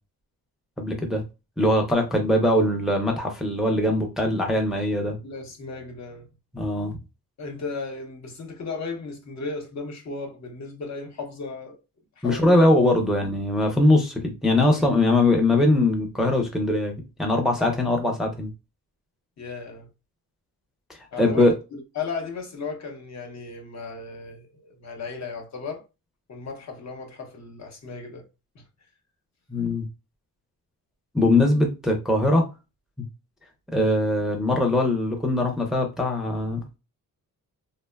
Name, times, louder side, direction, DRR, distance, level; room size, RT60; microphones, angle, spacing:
voice 1, 0.8-1.2 1.6-5.2 6.5-6.9 12.2-16.9 17.2-18.5 21.2-21.5 29.5-29.8 31.1-32.5 33.7-36.6, left 1 dB, ahead, 0.4 m, -21 dB
voice 2, 5.2-6.3 7.4-11.8 12.2-12.9 17.6-17.8 19.4-19.9 21.1-25.8 26.3-28.2 28.5-28.6, left 4 dB, 50° left, 0.8 m, -35 dB
2.9 x 2.0 x 2.2 m
cardioid pair, 115°, 35 cm